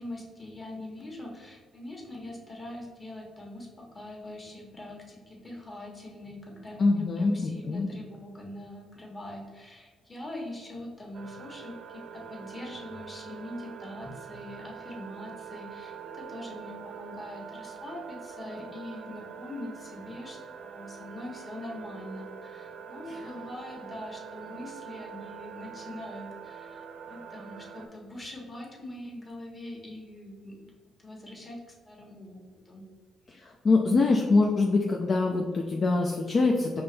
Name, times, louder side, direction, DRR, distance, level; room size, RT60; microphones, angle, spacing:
voice 1, 0.0-30.6 31.0-32.8, left 1 dB, 25° left, -1 dB, 1.4 m, -42 dB
voice 2, 6.8-7.9 33.3-36.8, left 3 dB, 45° left, 1 dB, 0.4 m, -24 dB
sound 1, 11.1-27.9, right 7 dB, 65° right, 0.6 m, -44 dB
5.2 x 2.9 x 3.3 m, 1.5 s
cardioid pair, 90°, 0 cm